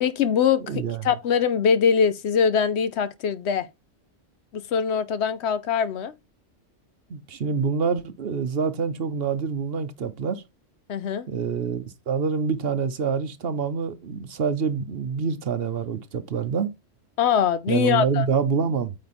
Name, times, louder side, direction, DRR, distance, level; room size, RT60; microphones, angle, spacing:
voice 1, 0.0-3.7 4.5-6.1 10.9-11.3 17.2-18.2, left 7 dB, 70° left, 0.9 m, -22 dB
voice 2, 0.7-1.0 7.1-10.4 11.3-16.7 17.7-18.9, right 6 dB, 60° right, 0.9 m, -26 dB
8.8 x 3.1 x 4.3 m
omnidirectional pair, 1.2 m